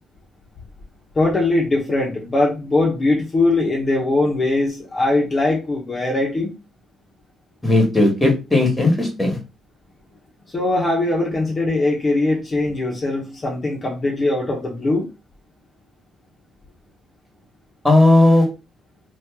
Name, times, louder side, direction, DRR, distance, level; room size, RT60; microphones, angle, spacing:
voice 1, 1.1-6.5 10.5-15.0, left 2 dB, 35° left, -2 dB, 1.0 m, -21 dB
voice 2, 7.6-9.4 17.8-18.4, left 2 dB, 10° left, 2 dB, 1.5 m, -15 dB
2.9 x 2.5 x 3.6 m, 0.28 s
cardioid pair, 90°, 0 cm